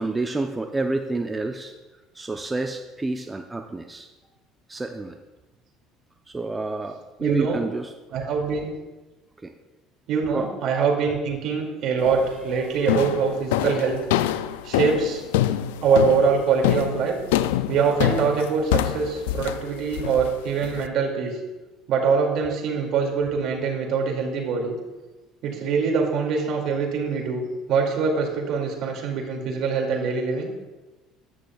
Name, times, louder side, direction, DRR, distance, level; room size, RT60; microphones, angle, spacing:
voice 1, 0.0-1.7 2.1-4.1 4.7-5.2 6.3-7.9 9.4-9.5 10.3-10.4, right 2 dB, 20° right, 5 dB, 0.7 m, -29 dB
voice 2, 7.2-7.6 8.1-8.7 10.1-14.0 14.6-15.2 15.8-17.2 17.7-21.3 21.9-24.8 25.4-30.5, right 5 dB, 65° right, 1 dB, 2.5 m, -23 dB
sound 1, 12.0-12.4 12.9-20.9, left 12 dB, 85° left, 0.4 m, -25 dB
14.0 x 10.0 x 2.4 m, 1.2 s
hypercardioid pair, 75°, 0 cm